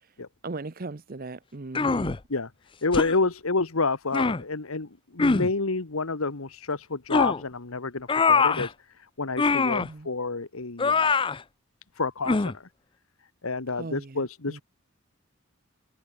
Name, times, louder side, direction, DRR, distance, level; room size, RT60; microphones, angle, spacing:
voice 1, 0.4-2.2 9.8-10.1 13.7-14.6, right 3 dB, 45° right, 0.8 m, -38 dB
sound 1, 1.8-2.2 2.9-3.1 4.1-4.4 5.2-5.5 7.1-7.4 8.1-8.7 9.4-9.9 10.8-11.4 12.3-12.6, left 4 dB, 25° left, 0.5 m, -23 dB
voice 2, 2.8-11.2 11.9-12.7 13.4-14.6, left 3 dB, 75° left, 1.4 m, -29 dB
head